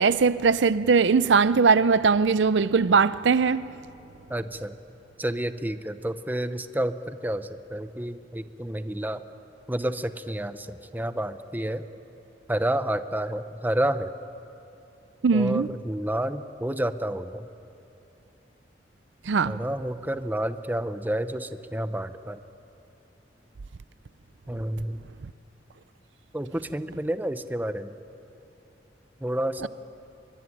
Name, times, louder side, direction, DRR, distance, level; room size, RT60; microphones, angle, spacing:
voice 1, 0.0-3.6 15.2-15.7 19.3-19.6 29.6-29.7, right 5 dB, 75° right, 0.5 m, -20 dB
voice 2, 4.3-4.8 5.2-9.2 9.7-11.9 12.5-14.1 15.3-17.5 19.5-22.4 24.5-25.1 26.3-28.0 29.2-29.7, right 1 dB, 10° right, 0.7 m, -30 dB
23.5 x 23.5 x 9.9 m
head